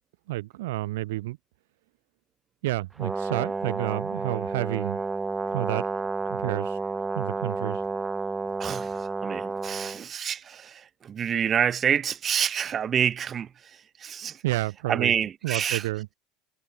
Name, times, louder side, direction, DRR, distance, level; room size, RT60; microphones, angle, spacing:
voice 1, 0.3-1.4 2.6-5.0 5.5-5.9 6.2-6.8 7.1-7.8 14.4-15.1 15.4-16.1, right 18 dB, 70° right, 1.6 m, -30 dB
Brass instrument, 3.0-10.0, right 3 dB, 15° right, 1.1 m, -31 dB
voice 2, 8.6-14.4 14.9-15.9, right 8 dB, 35° right, 1.8 m, -28 dB
figure-of-eight pair, 75°, 0 cm